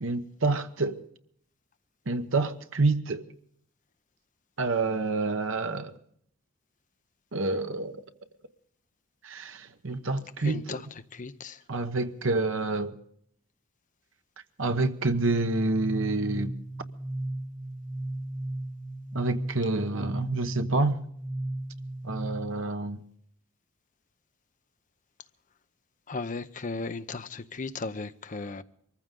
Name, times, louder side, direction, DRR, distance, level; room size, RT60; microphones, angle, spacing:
voice 1, 0.0-1.0 2.1-3.3 4.6-5.9 7.3-8.0 9.2-10.9 11.7-12.9 14.6-16.5 19.1-21.0 22.0-23.0, right 3 dB, 65° right, 1.1 m, -28 dB
voice 2, 10.4-10.8 11.1-11.5 26.1-28.6, left 3 dB, 40° left, 0.7 m, -36 dB
sound 1, 15.1-22.6, right 1 dB, 10° left, 7.7 m, -35 dB
23.0 x 15.0 x 3.7 m
head